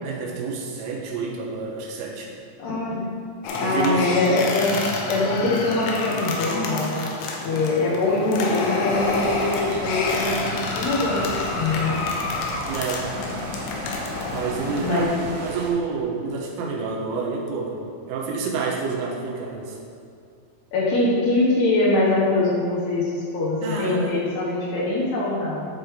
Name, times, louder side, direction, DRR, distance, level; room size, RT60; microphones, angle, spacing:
voice 1, 0.0-2.3 3.6-4.2 12.7-13.1 14.3-17.8 18.1-19.8 23.6-24.2, right 4 dB, 85° right, -2 dB, 3.6 m, -28 dB
voice 2, 2.6-3.1 3.6-4.7 5.1-12.0 14.8-15.1 20.7-25.7, left 2 dB, 70° left, -5 dB, 2.9 m, -23 dB
sound 1, 3.4-15.0, left 3 dB, 85° left, 3.5 m, -28 dB
sound 2, 8.9-15.7, right 2 dB, 70° right, 2.8 m, -35 dB
12.5 x 5.3 x 3.7 m, 2.5 s
omnidirectional pair, 5.6 m